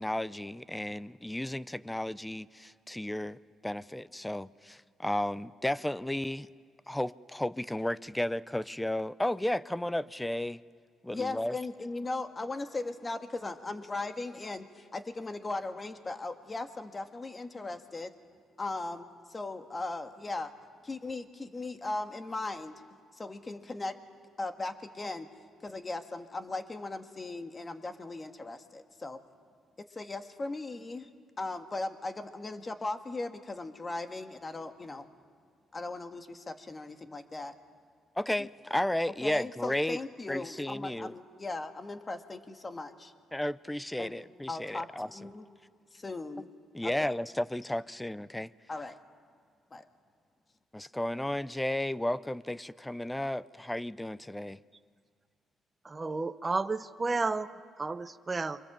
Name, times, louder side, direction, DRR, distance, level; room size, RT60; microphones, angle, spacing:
voice 1, 0.0-3.4 3.6-6.5 6.9-10.6 11.0-11.5 38.2-40.0 40.3-41.1 43.3-45.1 46.7-48.5 50.7-54.6, left 1 dB, 10° left, 17 dB, 0.6 m, -33 dB
voice 2, 11.1-18.1 18.6-20.5 20.8-22.7 23.1-23.9 24.4-25.3 25.6-29.2 29.8-31.1 31.4-35.1 35.7-37.5 38.4-38.5 39.2-43.1 44.0-44.1 44.5-45.4 45.9-46.5 46.8-47.1 48.7-48.9 49.7-49.8, left 2 dB, 25° left, 7 dB, 1.7 m, -38 dB
voice 3, 55.8-58.6, right 3 dB, 25° right, 10 dB, 1.0 m, -32 dB
28.0 x 24.5 x 7.5 m, 2.1 s
cardioid pair, 90°, 0 cm